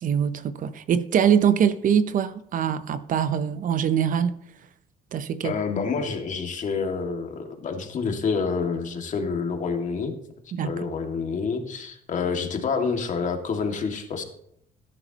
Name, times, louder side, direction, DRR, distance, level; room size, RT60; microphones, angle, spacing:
voice 1, 0.0-4.4 5.1-5.5 10.5-10.8, right 8 dB, 50° right, 0.8 m, -23 dB
voice 2, 5.4-10.1 10.6-14.2, left 5 dB, 45° left, 2.2 m, -28 dB
18.0 x 11.0 x 3.0 m
cardioid pair, 110°, 17 cm